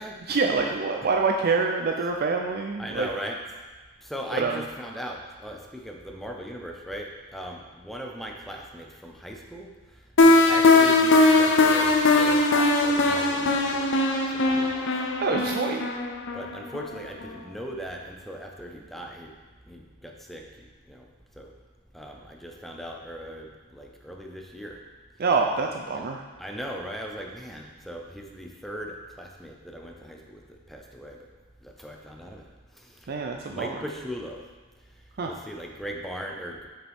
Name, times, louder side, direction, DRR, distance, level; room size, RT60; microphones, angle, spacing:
voice 1, 0.3-3.1 4.3-4.6 15.2-15.9 25.2-26.2 33.1-33.8 35.2-35.3, right 4 dB, 50° right, 3 dB, 0.5 m, -26 dB
voice 2, 2.8-3.4 4.0-9.7 10.2-13.9 14.3-14.9 16.3-19.3 19.7-20.4 20.9-21.0 21.4-21.5 21.9-24.8 26.4-30.4 30.7-31.2 31.6-32.4 32.8-32.9 33.5-34.4 35.3-36.7, equal, ahead, 0 dB, 0.7 m, -38 dB
sound 1, 10.2-16.9, left 2 dB, 60° left, 0.7 m, -20 dB
7.2 x 6.5 x 3.6 m, 1.3 s
head